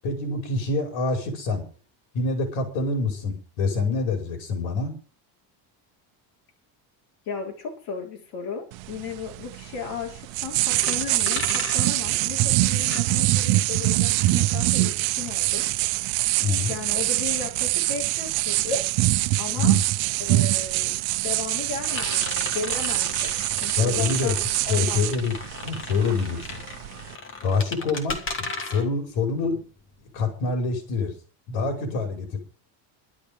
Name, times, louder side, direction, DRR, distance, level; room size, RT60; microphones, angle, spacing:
voice 1, 0.0-1.6 2.1-4.9 16.4-16.7 19.6-19.8 23.8-24.4 24.7-25.4 25.6-26.6 27.4-29.6 30.1-31.1 31.5-32.4, left 4 dB, 75° left, 4 dB, 5.6 m, -26 dB
voice 2, 7.3-15.7 16.7-18.8 19.4-19.8 20.2-24.4 24.7-25.0, left 5 dB, 55° left, -1 dB, 5.0 m, -35 dB
sound 1, 8.7-27.2, right 18 dB, 75° right, 0.9 m, -24 dB
sound 2, 10.7-13.6 13.9-30.3, left 3 dB, 25° left, 2.6 m, -36 dB
12.5 x 12.0 x 5.4 m, 0.37 s
cardioid pair, 170°, 46 cm